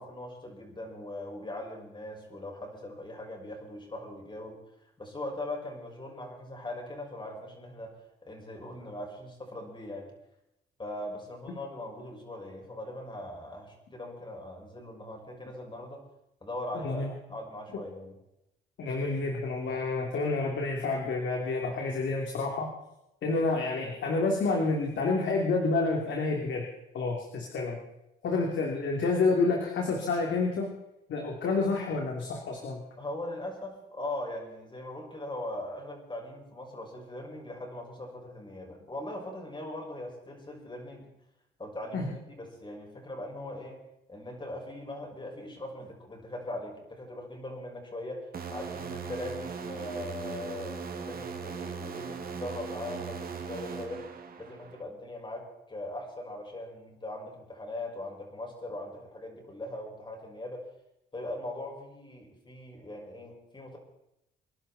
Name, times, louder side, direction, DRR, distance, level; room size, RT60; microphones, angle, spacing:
voice 1, 0.0-8.0 8.2-10.1 10.8-16.1 16.4-18.2 33.0-41.1 41.6-43.8 44.1-54.1 54.4-60.6 61.1-63.8, left 1 dB, 25° left, 0 dB, 6.1 m, -40 dB
voice 2, 16.7-17.1 18.8-22.7 23.2-26.6 26.9-27.8 28.2-30.7 31.1-32.8 41.9-42.1, left 3 dB, 70° left, 0 dB, 3.2 m, -29 dB
sound 1, 48.3-54.8, right 5 dB, 50° right, 2.3 m, -39 dB
27.0 x 11.0 x 4.3 m, 0.86 s
cardioid pair, 90°, 20 cm